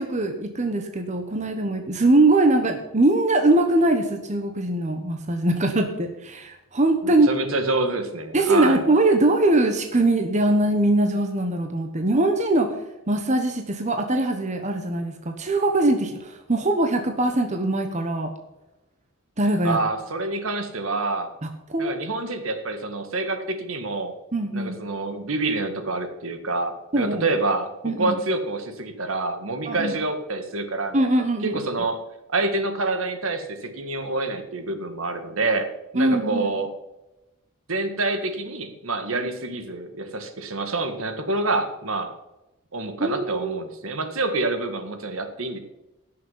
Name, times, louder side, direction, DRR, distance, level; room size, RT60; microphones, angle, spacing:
voice 1, 0.0-7.3 8.3-12.7 13.1-18.3 19.4-19.8 21.4-21.9 24.3-24.8 26.9-27.2 27.8-28.2 29.7-29.9 30.9-31.6 35.9-36.5 43.0-43.6, right 2 dB, 35° right, 5 dB, 1.1 m, -22 dB
voice 2, 7.0-8.8 19.6-21.3 21.8-24.1 24.5-31.0 31.4-32.0 32.3-35.7 35.9-36.7 37.7-42.1 42.7-45.6, right 2 dB, 70° right, 7 dB, 1.8 m, -27 dB
17.0 x 6.8 x 5.6 m, 0.98 s
head